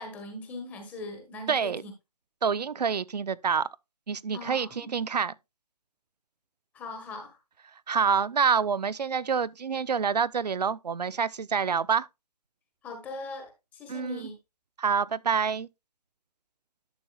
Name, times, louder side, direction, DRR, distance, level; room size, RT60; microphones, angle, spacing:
voice 1, 0.0-1.9 4.3-4.9 6.7-7.4 12.8-14.4, left 2 dB, 10° left, 1.3 m, -40 dB
voice 2, 1.5-1.8 2.4-3.7 4.1-5.3 7.9-12.1 13.9-14.2 14.8-15.7, right 6 dB, 85° right, 0.7 m, -27 dB
11.5 x 7.0 x 2.3 m
hypercardioid pair, 165°, 20 cm